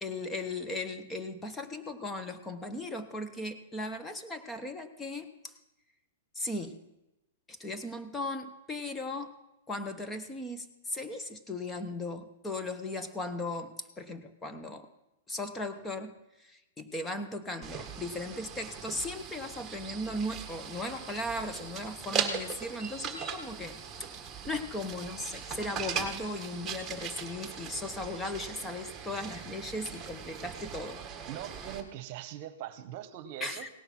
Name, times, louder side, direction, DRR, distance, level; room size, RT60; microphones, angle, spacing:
voice 1, 0.0-5.5 6.3-6.8 7.5-9.3 9.7-14.9 15.3-23.8 24.5-31.0 33.4-33.7, left 2 dB, 15° left, 8 dB, 1.0 m, -37 dB
sound 1, 17.6-31.8, right 7 dB, 20° right, 1.4 m, -39 dB
voice 2, 31.3-33.7, right 12 dB, 45° right, 12 dB, 1.1 m, -41 dB
17.5 x 6.6 x 6.0 m, 0.93 s
hypercardioid pair, 135°, 0 cm